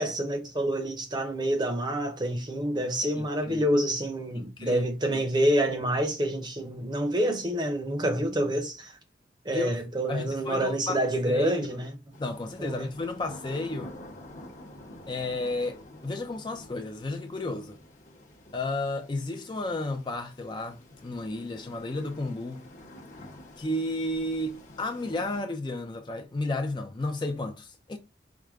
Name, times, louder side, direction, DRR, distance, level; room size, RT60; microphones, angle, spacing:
voice 1, 0.0-8.9 9.4-12.0 12.6-12.9, right 1 dB, 25° right, 0.7 m, -27 dB
voice 2, 3.1-3.6 4.3-5.2 9.5-9.8 10.1-11.5 12.2-13.9 15.1-17.8 18.5-22.7 23.6-28.0, left 2 dB, 25° left, 0.4 m, -33 dB
sound 1, 12.1-25.4, left 1 dB, 45° left, 0.9 m, -48 dB
4.7 x 2.2 x 3.5 m
head